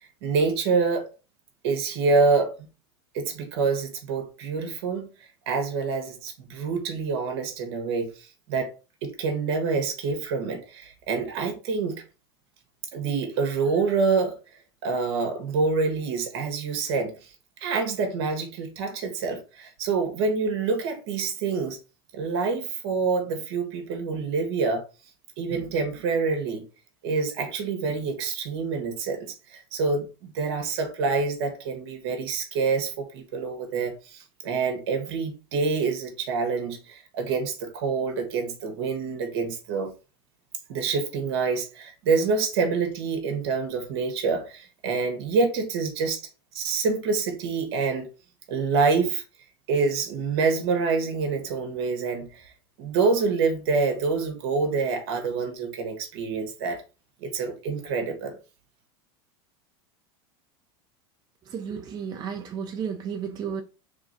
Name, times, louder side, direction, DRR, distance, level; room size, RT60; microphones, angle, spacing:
voice 1, 0.2-1.1 1.6-2.6 3.1-5.1 5.5-8.7 9.0-12.0 12.9-14.4 14.8-17.3 17.6-21.8 22.1-24.8 25.4-26.7 27.0-39.9 40.7-46.2 46.5-48.1 48.5-49.2 49.7-52.5 52.8-56.8 57.2-58.4, right 4 dB, 70° right, 1.4 m, -26 dB
voice 2, 61.5-63.6, right 7 dB, 30° right, 0.6 m, -33 dB
3.5 x 3.0 x 3.9 m
supercardioid pair, 135°, 14 cm